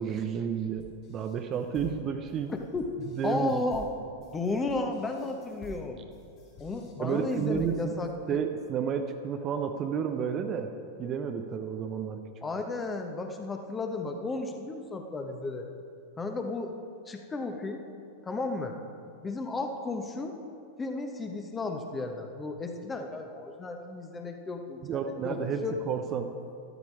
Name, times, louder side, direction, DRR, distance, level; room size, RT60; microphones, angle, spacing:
voice 1, 0.0-2.5 3.1-3.6 7.0-7.9 8.3-10.7 11.0-12.3 24.8-26.3, right 7 dB, 30° right, 6 dB, 0.8 m, -31 dB
sound 1, 0.8-8.1, equal, 40° left, 3.4 m, -49 dB
voice 2, 2.5-2.9 3.2-3.9 4.3-6.0 6.6-8.4 12.4-15.7 16.2-16.7 17.1-17.8 18.2-18.8 19.2-20.3 20.8-25.4 25.6-25.8, left 3 dB, 15° left, 4 dB, 1.4 m, -33 dB
13.0 x 12.5 x 4.8 m, 2.4 s
figure-of-eight pair, 90°, 0 cm